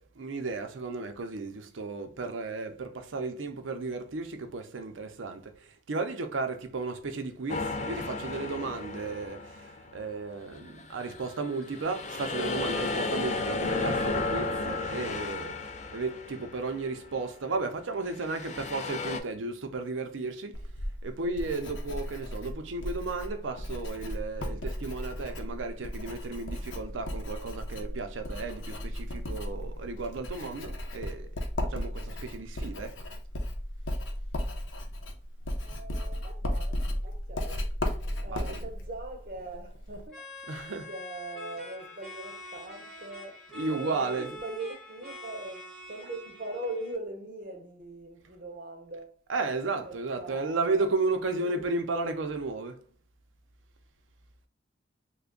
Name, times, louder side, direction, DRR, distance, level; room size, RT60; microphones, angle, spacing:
voice 1, 0.0-5.5 5.9-15.5 15.9-20.6 21.0-31.3 31.7-33.0 38.3-38.7 40.5-40.9 43.5-44.4 49.3-52.8, right 3 dB, 90° right, 0.6 m, -34 dB
sound 1, 7.5-10.0 10.5-17.0 18.1-19.2, left 3 dB, 35° left, 0.3 m, -33 dB
Writing, 20.5-40.1, left 1 dB, 90° left, 0.7 m, -35 dB
voice 2, 35.6-37.7 38.2-40.2 40.9-43.4 43.7-49.1 49.9-51.0 51.4-51.7, right 2 dB, 50° right, 0.7 m, -41 dB
sound 2, 40.1-46.9, left 1 dB, ahead, 0.8 m, -45 dB
3.3 x 2.2 x 3.7 m
head